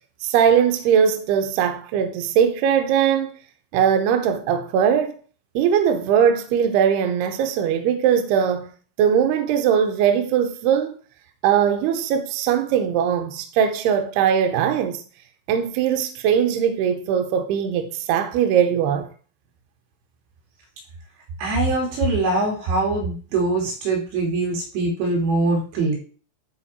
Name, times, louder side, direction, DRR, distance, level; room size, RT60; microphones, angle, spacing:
voice 1, 0.2-3.4 3.7-5.1 5.6-8.7 9.0-11.0 11.4-15.0 15.5-19.1, right 8 dB, 85° right, 2.3 m, -20 dB
voice 2, 21.4-26.0, right 2 dB, 65° right, 4.6 m, -22 dB
12.0 x 4.5 x 4.3 m
omnidirectional pair, 5.9 m